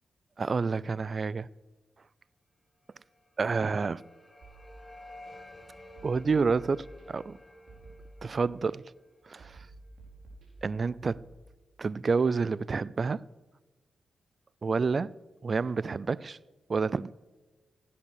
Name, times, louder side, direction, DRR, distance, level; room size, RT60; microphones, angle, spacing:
voice 1, 0.4-1.5 3.4-4.0 6.0-7.4 8.2-8.8 9.3-9.7 10.6-11.2 11.8-13.2 14.6-15.2 15.4-16.4 16.7-17.1, right 4 dB, 50° right, 0.4 m, -29 dB
sound 1, 3.1-10.1, left 1 dB, 25° left, 1.9 m, -52 dB
sound 2, 4.4-5.3 6.0-7.3 7.7-8.7 9.4-11.3, right 2 dB, 75° right, 4.8 m, -52 dB
16.0 x 10.0 x 6.7 m
supercardioid pair, 50°, 0 cm